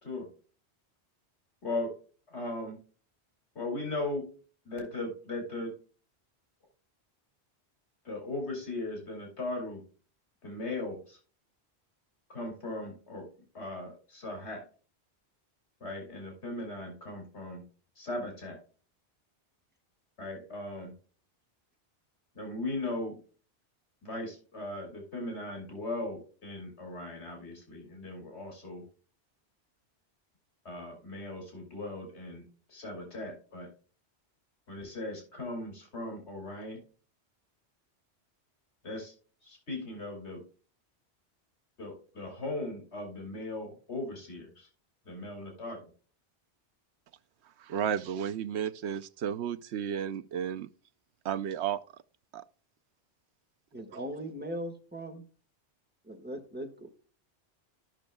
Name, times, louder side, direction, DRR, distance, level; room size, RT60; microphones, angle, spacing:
voice 1, 2.3-2.8 3.5-4.2 4.6-5.7 8.0-9.8 10.4-11.2 12.3-13.3 13.5-14.6 15.8-17.6 18.0-18.6 20.2-20.9 22.3-23.2 24.0-28.8 30.6-33.7 34.7-36.8 38.8-39.1 39.4-40.4 41.8-44.7 45.1-45.8, left 2 dB, 80° left, 2.8 m, -38 dB
voice 2, 47.6-50.7 51.2-51.8 52.3-52.4, right 8 dB, 80° right, 0.9 m, -33 dB
voice 3, 53.7-55.2 56.0-56.9, equal, 10° right, 1.4 m, -39 dB
13.5 x 6.1 x 2.2 m
omnidirectional pair, 1.1 m